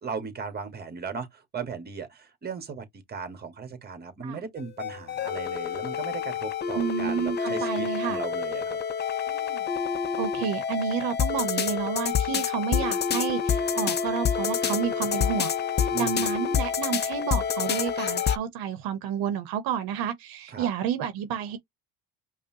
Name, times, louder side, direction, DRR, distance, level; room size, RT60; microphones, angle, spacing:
voice 1, 0.0-8.8 15.9-16.2 20.5-20.7, right 5 dB, 25° right, 1.4 m, -37 dB
sound 1, 4.6-18.4, left 7 dB, 30° left, 0.5 m, -28 dB
voice 2, 6.7-8.2 9.3-9.6 10.2-15.5 15.8-21.6, right 8 dB, 75° right, 1.0 m, -30 dB
5.2 x 2.3 x 2.7 m
cardioid pair, 110°, 36 cm